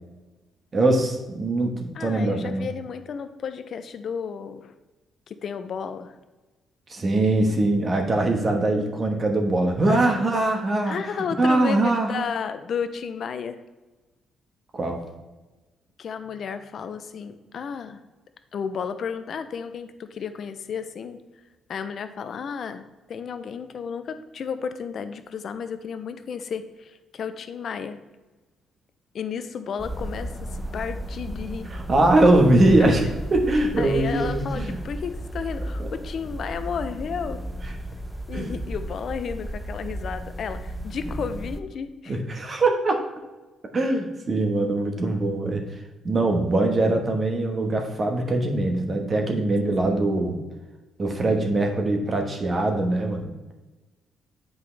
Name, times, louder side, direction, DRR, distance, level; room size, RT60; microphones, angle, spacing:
voice 1, 0.7-2.7 6.9-11.0 11.4-12.2 14.7-15.1 31.7-34.8 35.8-35.9 38.3-38.5 42.1-43.0 43.7-50.4 51.0-53.5, right 2 dB, 35° right, 3 dB, 1.2 m, -22 dB
voice 2, 1.9-4.7 5.3-6.2 9.9-10.2 10.9-13.6 16.0-18.0 18.5-21.2 21.7-28.0 29.1-31.7 33.8-37.4 38.3-42.2 49.9-50.0, left 6 dB, 60° left, 10 dB, 0.6 m, -33 dB
sound 1, 29.8-41.6, right 1 dB, 5° right, 0.7 m, -34 dB
8.3 x 5.2 x 3.3 m, 1.2 s
cardioid pair, 90°, 0 cm